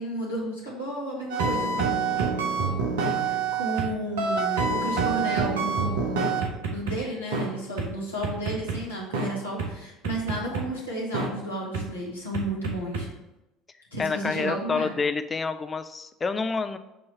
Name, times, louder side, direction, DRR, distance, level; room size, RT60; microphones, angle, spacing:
voice 1, 0.0-2.0 3.2-6.4 6.7-13.1 13.9-14.9, right 1 dB, 85° left, -6 dB, 1.7 m, -33 dB
sound 1, 1.3-3.9 4.2-6.9 7.3-7.5 7.8-7.9 8.2-8.8 9.1-9.3 9.6-9.7 10.0-10.6 11.1-11.3 11.7-11.8 12.3-13.0, right 5 dB, 65° right, 1.0 m, -26 dB
voice 2, 14.0-16.8, left 4 dB, 25° left, 10 dB, 0.5 m, -28 dB
7.1 x 3.1 x 5.6 m, 0.95 s
figure-of-eight pair, 60°, 0 cm